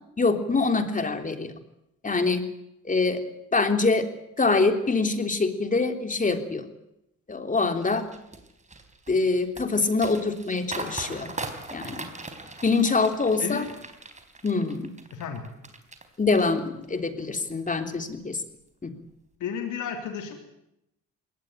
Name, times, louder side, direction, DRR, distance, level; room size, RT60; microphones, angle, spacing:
voice 1, 0.2-1.5 2.0-2.4 2.9-3.2 3.5-4.0 4.4-6.6 7.3-8.0 9.1-11.3 11.7-12.0 12.6-13.6 14.4-14.9 16.2-18.4 18.8-18.9, left 3 dB, 25° left, 7 dB, 3.4 m, -24 dB
sound 1, 7.8-16.0 16.3-17.0 17.4-17.7, right 3 dB, 25° right, 4.1 m, -40 dB
voice 2, 13.4-13.7 15.1-15.4 19.4-20.4, left 8 dB, 80° left, 5 dB, 3.3 m, -32 dB
21.5 x 18.5 x 9.1 m, 0.82 s
cardioid pair, 90°, 30 cm